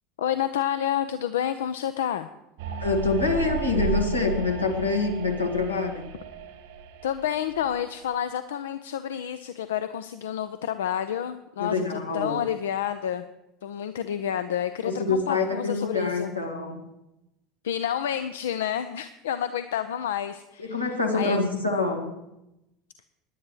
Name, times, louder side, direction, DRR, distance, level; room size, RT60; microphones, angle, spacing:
voice 1, 0.2-2.3 7.0-13.3 13.6-16.3 17.6-21.4, left 10 dB, 65° left, 11 dB, 0.4 m, -29 dB
sound 1, 2.6-8.0, right 4 dB, 65° right, 1.3 m, -34 dB
voice 2, 2.8-6.1 11.6-12.4 14.8-16.9 20.6-22.2, left 3 dB, 85° left, 2 dB, 1.6 m, -26 dB
18.0 x 10.5 x 3.1 m, 0.92 s
figure-of-eight pair, 70°, 0 cm